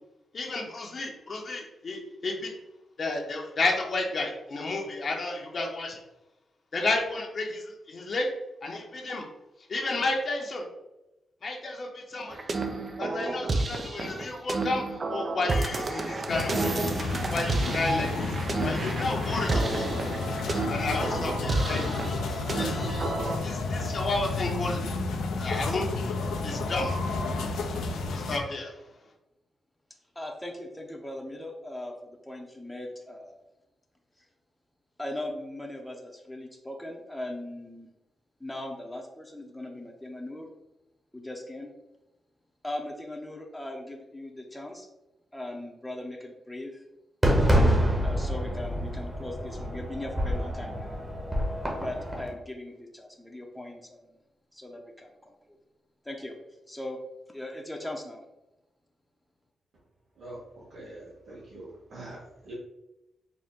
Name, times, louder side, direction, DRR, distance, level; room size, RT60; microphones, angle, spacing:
voice 1, 0.3-2.5 3.0-6.0 6.7-8.3 8.6-9.3 9.7-10.6 11.4-12.4 13.0-14.8 15.1-16.7 17.3-18.3 18.6-19.9 20.7-23.1 23.4-24.8 25.4-25.9 26.4-27.0 28.1-28.8, left 2 dB, 55° left, 0 dB, 0.7 m, -32 dB
sound 1, 12.3-23.4, right 3 dB, 45° right, 0.4 m, -31 dB
sound 2, 16.3-28.4, left 3 dB, 85° left, 0.4 m, -31 dB
voice 2, 30.1-33.4 34.2-34.3 35.0-37.9 38.4-40.5 41.1-41.7 42.6-44.9 45.3-46.8 48.0-51.0 51.8-54.2 54.5-55.6 56.0-56.4 56.7-57.0 57.3-58.2, left 1 dB, 5° left, 0 dB, 0.6 m, -39 dB
Fireworks, 47.2-52.3, equal, 20° right, 1.1 m, -26 dB
voice 3, 60.2-62.5, right 1 dB, 70° right, -5 dB, 0.8 m, -44 dB
3.9 x 2.2 x 3.5 m, 0.95 s
cardioid pair, 65°, 0 cm